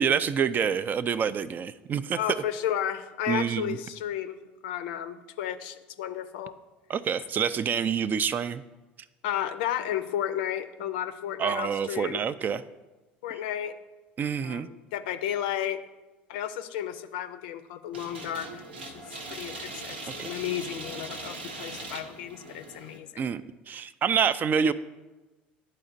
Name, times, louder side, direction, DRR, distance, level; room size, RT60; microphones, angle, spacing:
voice 1, 0.0-2.2 3.3-3.8 6.9-8.6 11.4-12.6 14.2-14.7 20.2-20.3 23.2-23.4 23.7-24.7, right 7 dB, 35° right, 15 dB, 0.3 m, -27 dB
voice 2, 2.1-4.4 4.6-6.5 9.2-12.2 13.2-13.7 14.4-15.8 16.3-18.5 18.9-23.2, left 10 dB, 70° left, 10 dB, 0.5 m, -33 dB
sound 1, 17.9-23.0, right 2 dB, 85° right, 0.8 m, -40 dB
11.5 x 4.2 x 2.6 m, 1.1 s
hypercardioid pair, 65°, 5 cm